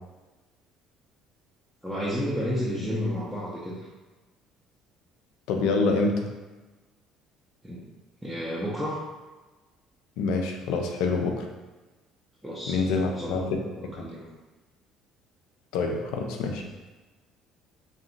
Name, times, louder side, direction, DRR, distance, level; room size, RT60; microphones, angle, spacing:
voice 1, 1.8-3.9 7.6-7.8 8.2-9.0 12.4-13.5 13.8-14.3, equal, 5° right, -8 dB, 0.5 m, -31 dB
voice 2, 5.5-6.2 10.2-11.5 12.7-13.6 15.7-16.6, left 3 dB, 65° left, 2 dB, 0.3 m, -26 dB
2.7 x 2.1 x 2.6 m, 1.2 s
figure-of-eight pair, 55°, 0 cm